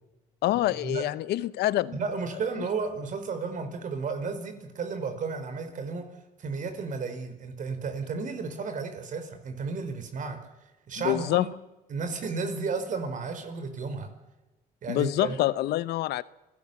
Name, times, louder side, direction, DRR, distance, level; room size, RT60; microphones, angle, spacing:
voice 1, 0.4-2.0 11.0-11.5 14.9-16.2, left 15 dB, 75° left, 0.8 m, -26 dB
voice 2, 1.9-6.1 6.4-10.4 10.9-11.5 11.9-14.1 14.8-15.4, right 4 dB, 50° right, 4.8 m, -33 dB
28.0 x 16.5 x 7.1 m
cardioid pair, 110°, 17 cm